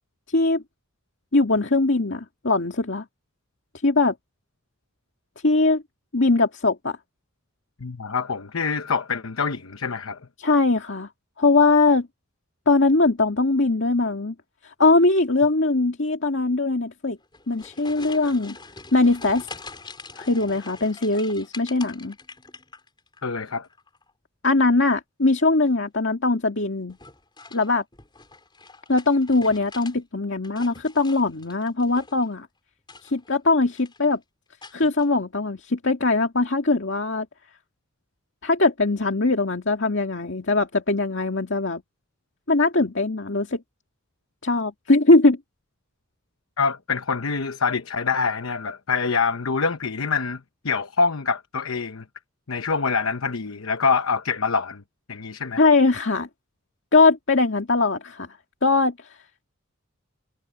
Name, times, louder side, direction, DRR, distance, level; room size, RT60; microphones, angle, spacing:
voice 1, 1.3-3.0 3.8-4.1 5.4-5.8 6.1-7.0 10.4-11.1 11.4-12.1 12.7-14.3 14.8-17.2 17.5-18.6 18.9-19.5 20.2-22.2 24.4-27.0 27.5-27.8 28.9-32.5 33.0-34.2 34.7-37.3 38.4-41.8 42.5-43.6 44.4-45.4 55.6-56.3 56.9-58.3 58.6-58.9, left 3 dB, 60° left, 2.2 m, -21 dB
voice 2, 7.8-10.2 23.2-23.7 46.6-52.0 52.5-54.8 55.1-55.6, left 5 dB, 85° left, 0.9 m, -25 dB
sound 1, 17.2-23.2 23.5-24.1 25.5-25.9 26.9-30.0 30.3-32.3 32.8-33.4 33.7-34.1 34.6-35.1, left 3 dB, 20° left, 5.2 m, -44 dB
head